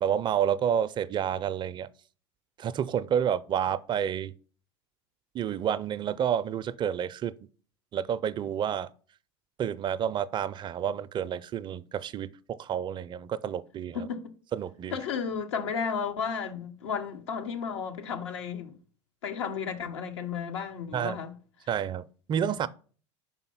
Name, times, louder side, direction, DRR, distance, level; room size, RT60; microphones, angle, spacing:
voice 1, 0.0-1.9 2.6-4.3 5.3-7.3 7.9-8.9 9.6-14.1 14.5-15.0 20.9-21.2 21.7-22.7, right 9 dB, 35° right, 0.4 m, -29 dB
voice 2, 13.9-14.3 14.9-18.7 19.2-21.3, left 6 dB, 80° left, 1.0 m, -33 dB
5.5 x 4.8 x 5.5 m
hypercardioid pair, 95°, 15 cm